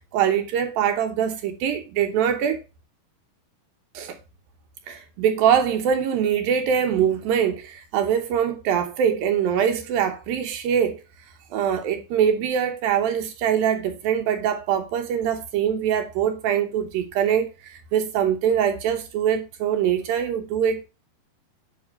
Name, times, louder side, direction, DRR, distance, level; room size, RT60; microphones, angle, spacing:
voice 1, 0.1-2.6 3.9-4.2 4.9-11.0 11.5-20.9, right 8 dB, 75° right, 2.5 m, -23 dB
9.0 x 3.8 x 5.2 m
omnidirectional pair, 4.4 m